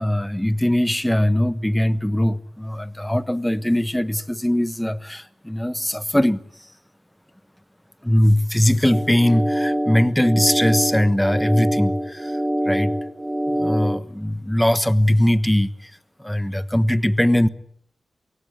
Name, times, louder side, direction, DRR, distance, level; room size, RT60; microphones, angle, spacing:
voice 1, 0.0-6.7 8.0-12.4 12.6-13.0 13.5-15.9 16.2-17.5, left 1 dB, 10° left, 1.3 m, -20 dB
sound 1, 8.9-14.0, equal, 15° right, 1.2 m, -25 dB
23.0 x 17.0 x 8.6 m
cardioid pair, 60°, 0 cm